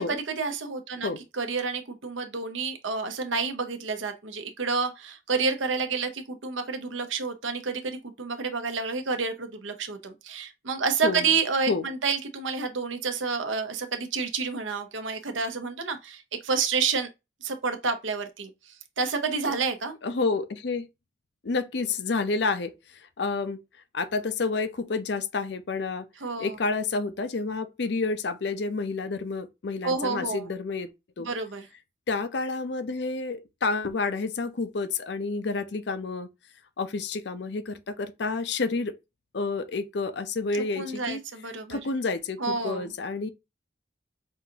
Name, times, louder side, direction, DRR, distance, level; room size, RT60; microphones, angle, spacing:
voice 1, 0.0-1.1 1.4-17.1 17.4-19.9 26.2-26.5 29.8-30.5 31.2-31.7 40.5-41.8 42.4-42.9, right 4 dB, 80° right, 0.8 m, -29 dB
voice 2, 20.0-20.9 21.4-23.6 23.9-26.1 26.4-31.3 32.1-36.3 36.8-39.0 39.3-41.2 41.7-43.3, left 3 dB, 60° left, 0.5 m, -29 dB
5.5 x 2.5 x 2.8 m
head